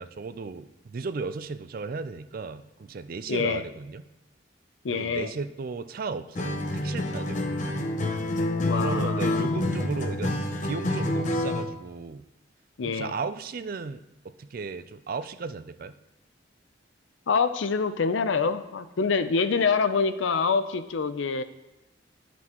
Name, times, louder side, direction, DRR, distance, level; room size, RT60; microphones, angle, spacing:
voice 1, 0.0-4.1 4.9-7.9 8.8-10.3 10.6-12.2 12.8-16.0, right 4 dB, 50° right, 12 dB, 0.4 m, -35 dB
voice 2, 3.3-3.6 4.8-5.3 8.6-9.5 12.8-13.1 17.3-21.4, left 5 dB, 80° left, 11 dB, 0.5 m, -26 dB
Acoustic guitar, 6.3-11.7, left 1 dB, 40° left, 0.7 m, -28 dB
11.0 x 6.0 x 3.0 m, 0.96 s
head